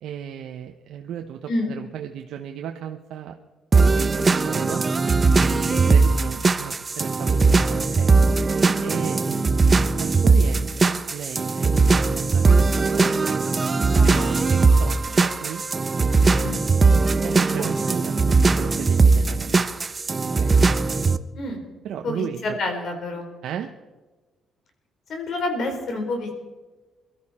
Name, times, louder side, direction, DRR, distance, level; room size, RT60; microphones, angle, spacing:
voice 1, 0.0-3.4 3.8-4.9 5.4-8.2 8.8-13.4 14.0-15.7 16.9-19.7 20.2-20.6 21.8-22.6 23.4-23.7, right 9 dB, 80° right, 4 dB, 0.9 m, -35 dB
sound 1, 3.7-21.2, right 4 dB, 25° right, 0.7 m, -19 dB
voice 2, 13.9-14.5 16.4-16.6 17.6-17.7 21.3-21.6 22.0-23.3 25.1-26.4, left 2 dB, 60° left, 4 dB, 4.2 m, -29 dB
23.0 x 13.0 x 4.3 m, 1.2 s
cardioid pair, 115°, 0 cm